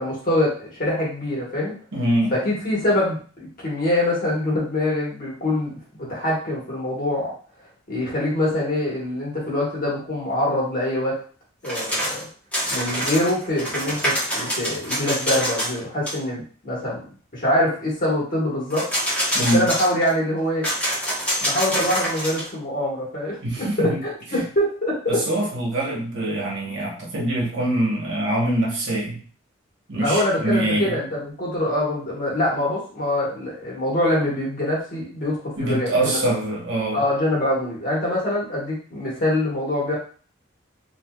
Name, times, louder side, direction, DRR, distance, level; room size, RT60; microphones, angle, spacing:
voice 1, 0.0-1.7 2.3-3.2 3.6-7.3 7.9-11.2 11.6-12.3 12.7-17.0 17.3-18.9 19.5-20.7 21.4-25.2 30.0-36.2 36.9-39.9, left 1 dB, 45° left, -5 dB, 1.3 m, -24 dB
voice 2, 1.9-2.3 19.3-19.7 23.4-24.0 24.3-24.4 25.1-29.2 29.9-31.0 35.6-37.0, right 1 dB, 65° right, -3 dB, 1.1 m, -24 dB
sound 1, 11.6-12.3 12.5-15.8 16.1-16.2 18.7-20.1 20.6-22.5, equal, 5° left, 1.1 m, -26 dB
3.4 x 2.7 x 2.3 m, 0.42 s
head